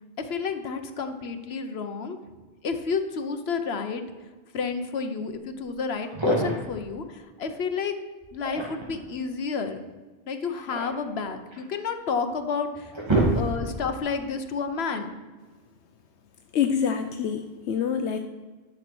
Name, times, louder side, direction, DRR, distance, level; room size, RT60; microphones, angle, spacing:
voice 1, 0.2-2.2 2.6-4.3 4.5-8.0 8.3-9.8 10.3-12.9 13.3-15.1, left 5 dB, 65° left, 7 dB, 1.2 m, -30 dB
sound 1, 5.6-5.7 6.0-6.8 8.2-9.0 10.3-11.7 12.3-12.4 12.7-13.9, right 2 dB, 25° right, 2.6 m, -27 dB
voice 2, 16.5-18.2, left 7 dB, 80° left, 6 dB, 1.0 m, -26 dB
11.5 x 6.3 x 6.1 m, 1.3 s
omnidirectional pair, 1.1 m